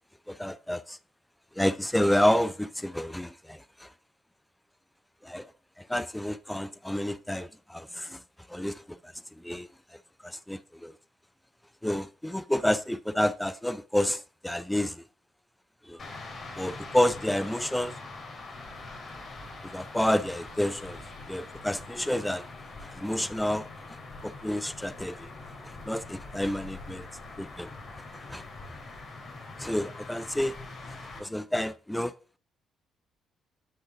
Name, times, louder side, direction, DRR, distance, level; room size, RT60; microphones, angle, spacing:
voice 1, 0.3-1.0 1.6-3.9 5.2-5.5 5.8-8.2 8.5-9.7 10.2-10.9 11.8-15.0 15.8-16.0 16.6-18.0 19.6-21.0 21.3-22.5 22.8-25.3 25.6-27.1 27.4-27.7 28.3-28.4 29.6-30.6 30.9-32.1, left 1 dB, 5° left, 0.5 m, -29 dB
sound 1, 16.0-31.2, left 3 dB, 55° left, 2.7 m, -43 dB
9.1 x 5.6 x 3.6 m
supercardioid pair, 55°, 0 cm